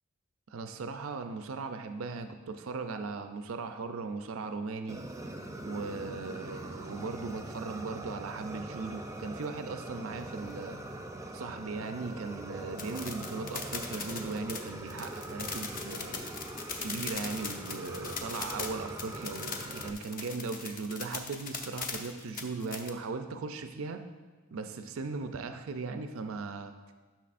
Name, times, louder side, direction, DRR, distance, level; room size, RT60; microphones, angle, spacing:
voice 1, 0.5-5.0 5.6-10.8 11.3-16.3 16.8-24.0 24.5-26.7, right 4 dB, 90° right, 7 dB, 0.5 m, -38 dB
Fire, 4.9-19.9, right 1 dB, 15° right, 0.5 m, -42 dB
sound 1, 12.8-22.9, left 5 dB, 45° left, 0.8 m, -39 dB
12.5 x 6.1 x 2.5 m, 1.3 s
head